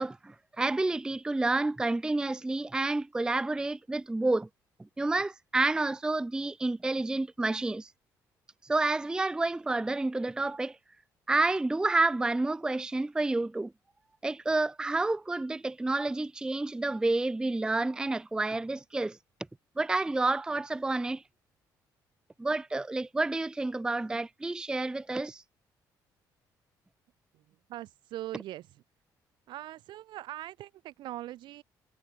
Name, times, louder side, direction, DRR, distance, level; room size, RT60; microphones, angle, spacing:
voice 1, 0.0-4.5 5.0-7.9 8.7-10.8 11.3-13.7 14.2-19.2 19.8-21.2 22.4-25.4, right 2 dB, 10° right, 0.4 m, -29 dB
voice 2, 27.3-28.8 29.5-31.6, right 14 dB, 80° right, 4.5 m, -42 dB
cardioid pair, 90°, 8 cm